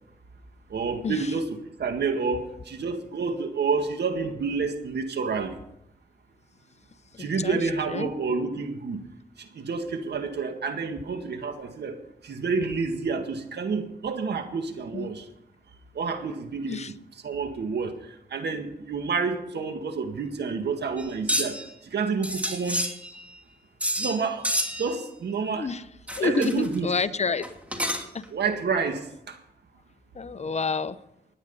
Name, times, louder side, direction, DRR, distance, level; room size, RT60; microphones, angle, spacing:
voice 1, 0.7-5.6 7.2-9.0 9.5-15.2 16.0-16.9 17.2-18.0 18.3-21.6 21.9-22.8 24.0-24.5 24.8-25.7 26.2-26.9 28.3-29.4, right 4 dB, 75° right, 6 dB, 1.9 m, -29 dB
voice 2, 7.1-7.6 7.9-8.1 14.9-15.1 16.7-16.9 25.5-25.8 26.2-27.4 28.1-28.3 30.1-31.0, left 4 dB, 40° left, 13 dB, 0.8 m, -29 dB
sound 1, 21.0-21.7 22.2-23.4 23.8-24.2 24.4-25.0 26.1-26.8 27.4-28.2, equal, 10° right, 2.6 m, -29 dB
18.0 x 9.9 x 5.5 m, 0.79 s
cardioid pair, 75°, 17 cm